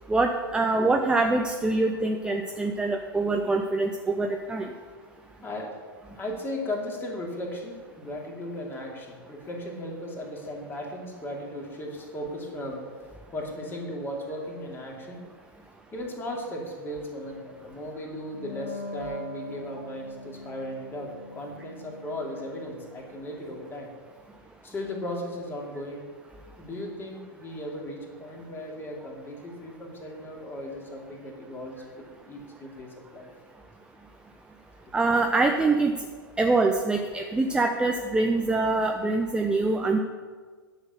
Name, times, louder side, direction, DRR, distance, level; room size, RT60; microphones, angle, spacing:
voice 1, 0.1-4.7 34.9-35.9 36.4-40.0, right 3 dB, 5° right, 3 dB, 0.6 m, -24 dB
voice 2, 6.2-12.8 13.3-15.2 15.9-23.9 24.6-26.0 26.6-33.3, left 1 dB, 15° left, 0 dB, 2.5 m, -36 dB
Wind instrument woodwind instrument, 18.3-23.4, left 1 dB, 35° left, 2.9 m, -42 dB
11.0 x 6.5 x 6.7 m, 1.5 s
figure-of-eight pair, 100°, 13 cm